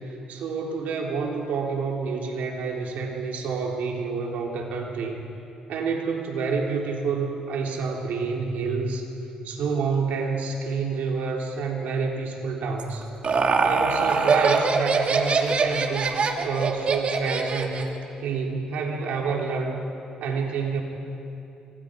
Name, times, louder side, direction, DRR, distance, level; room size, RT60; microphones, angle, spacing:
voice 1, 0.3-5.2 5.7-9.0 9.4-13.0 13.6-17.9 18.2-19.8 20.2-20.8, right 5 dB, 80° right, 0 dB, 3.7 m, -28 dB
Laughter, 12.8-18.0, right 4 dB, 50° right, 2.0 m, -23 dB
27.5 x 26.0 x 5.3 m, 2.8 s
cardioid pair, 90°, 3 cm